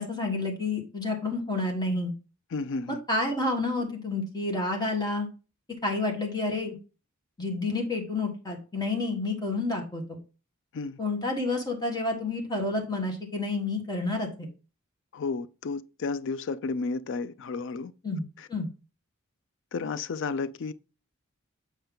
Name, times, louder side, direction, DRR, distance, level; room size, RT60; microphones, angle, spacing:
voice 1, 0.0-2.1 2.9-5.3 5.8-6.7 7.4-10.2 11.0-14.5 18.0-18.2 18.5-18.7, left 2 dB, 20° left, 1.6 m, -29 dB
voice 2, 2.5-3.0 10.7-11.0 15.1-17.9 18.4-18.5 19.7-20.7, left 4 dB, 60° left, 0.4 m, -32 dB
7.9 x 4.5 x 3.8 m
head